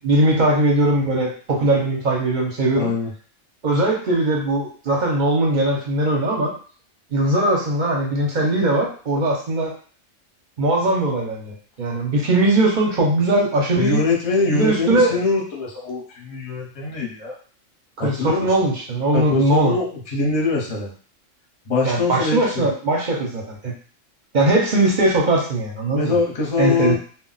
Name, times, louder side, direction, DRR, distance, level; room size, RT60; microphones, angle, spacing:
voice 1, 0.0-2.9 3.6-6.5 7.1-9.7 10.6-14.0 14.5-15.2 18.0-19.7 21.8-23.7 24.3-26.1 26.6-27.0, right 2 dB, 45° right, -1 dB, 0.7 m, -20 dB
voice 2, 2.7-3.1 13.8-17.4 18.0-18.5 19.1-20.9 21.7-22.6 25.9-27.0, left 4 dB, 30° left, -3 dB, 0.8 m, -23 dB
2.2 x 2.1 x 3.9 m, 0.42 s
omnidirectional pair, 1.3 m